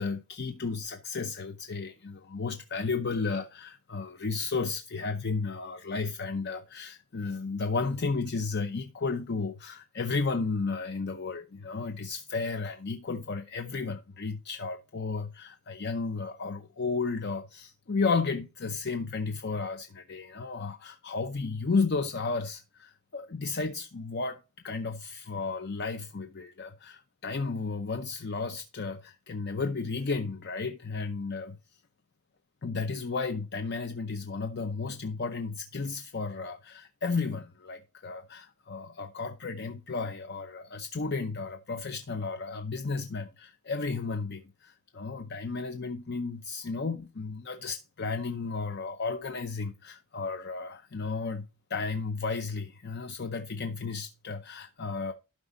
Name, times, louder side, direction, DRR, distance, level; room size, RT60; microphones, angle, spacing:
voice 1, 0.0-31.8 32.6-55.1, left 4 dB, 50° left, 0.6 m, -33 dB
12.0 x 5.1 x 3.8 m
head